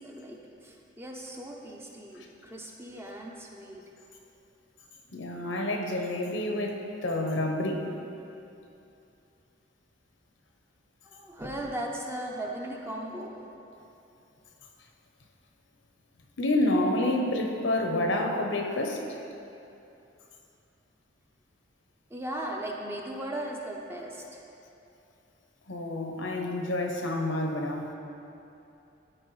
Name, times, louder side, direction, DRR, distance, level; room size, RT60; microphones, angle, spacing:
voice 1, 0.0-3.9 11.0-13.4 22.1-24.5, right 1 dB, 15° right, 0 dB, 0.6 m, -38 dB
voice 2, 5.1-7.9 16.4-19.0 25.7-27.9, left 1 dB, 80° left, 2 dB, 0.8 m, -28 dB
12.5 x 4.5 x 3.2 m, 2.8 s
head